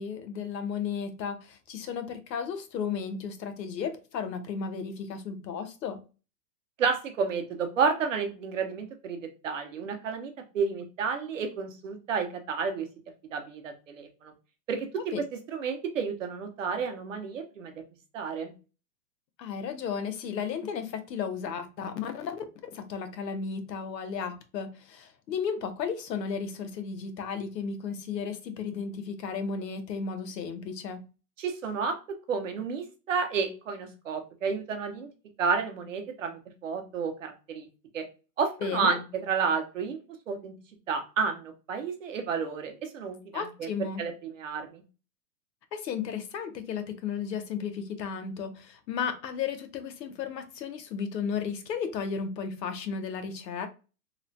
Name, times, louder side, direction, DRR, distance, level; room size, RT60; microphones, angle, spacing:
voice 1, 0.0-6.0 15.1-15.2 19.4-31.0 38.6-39.0 43.3-44.0 45.7-53.7, left 6 dB, 85° left, 0.8 m, -34 dB
voice 2, 6.8-12.9 13.3-14.3 14.7-14.9 15.5-17.7 18.1-18.5 31.4-35.1 35.4-37.7 37.9-38.0 38.4-40.0 40.3-40.5 40.9-43.7 44.0-44.8, right 5 dB, 50° right, 0.6 m, -31 dB
3.0 x 2.1 x 2.5 m
hypercardioid pair, 180°, 49 cm